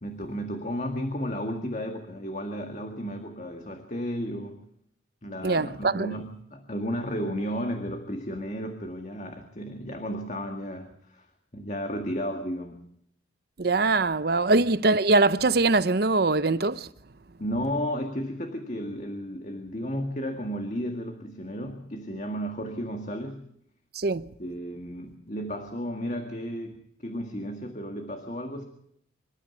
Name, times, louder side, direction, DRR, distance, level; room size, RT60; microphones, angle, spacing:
voice 1, 0.0-4.6 5.2-11.3 11.5-12.8 14.5-14.6 17.4-23.5 24.4-28.6, equal, 40° left, 1.9 m, -33 dB
voice 2, 5.4-6.1 13.6-16.9 23.9-24.3, right 3 dB, 55° right, 0.7 m, -22 dB
26.0 x 13.0 x 8.5 m
head